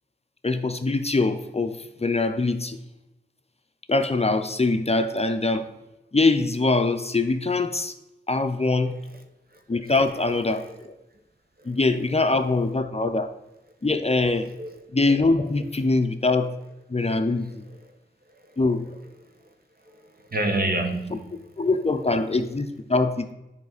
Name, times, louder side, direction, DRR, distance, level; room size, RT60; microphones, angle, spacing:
voice 1, 0.4-2.8 3.9-5.7 6.1-7.9 8.3-8.9 9.7-10.9 11.7-13.3 13.8-14.5 14.9-16.5 16.9-17.7 18.6-19.0 21.6-23.3, left 3 dB, 35° left, 8 dB, 0.6 m, -23 dB
voice 2, 10.6-10.9 11.6-11.8 14.6-14.8 17.1-17.2 17.7-17.9 18.3-18.6 19.3-19.4 19.8-21.5, right 2 dB, 50° right, 4 dB, 1.2 m, -30 dB
9.6 x 5.1 x 4.0 m, 0.98 s
wide cardioid pair, 80°, 19 cm